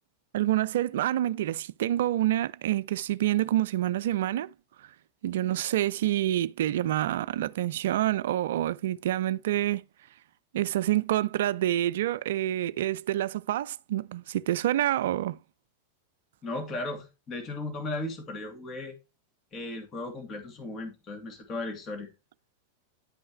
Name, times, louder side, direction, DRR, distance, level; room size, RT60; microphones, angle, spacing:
voice 1, 0.3-4.5 5.2-9.8 10.5-15.4, right 13 dB, 55° right, 0.4 m, -27 dB
voice 2, 16.4-19.0 19.5-22.1, left 2 dB, 30° left, 2.6 m, -36 dB
10.5 x 5.5 x 3.1 m
figure-of-eight pair, 90°, 0 cm